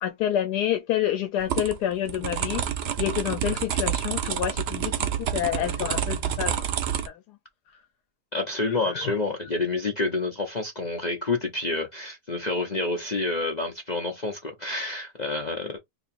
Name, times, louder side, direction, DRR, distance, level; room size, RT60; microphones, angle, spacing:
voice 1, 0.0-6.7 7.1-7.2 8.6-9.1, left 11 dB, 80° left, 1.1 m, -28 dB
sound 1, 1.4-7.1, right 9 dB, 75° right, 0.5 m, -28 dB
voice 2, 8.3-15.8, left 3 dB, 45° left, 0.5 m, -28 dB
2.9 x 2.8 x 4.2 m
omnidirectional pair, 1.7 m